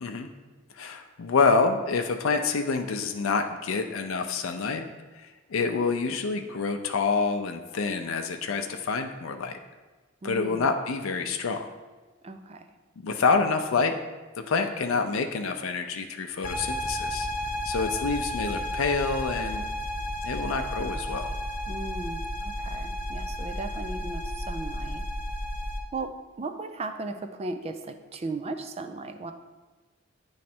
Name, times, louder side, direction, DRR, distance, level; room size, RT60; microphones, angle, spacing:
voice 1, 0.8-4.9 5.5-9.5 10.2-11.7 13.0-13.9 14.5-17.3 17.6-19.6 20.2-21.3, left 4 dB, 80° left, 5 dB, 0.5 m, -27 dB
voice 2, 10.2-10.7 12.2-12.6 21.7-25.0 25.9-29.3, right 3 dB, 30° right, 7 dB, 0.4 m, -36 dB
sound 1, 16.4-25.8, equal, 45° left, 0.7 m, -32 dB
9.3 x 3.2 x 4.3 m, 1.3 s
head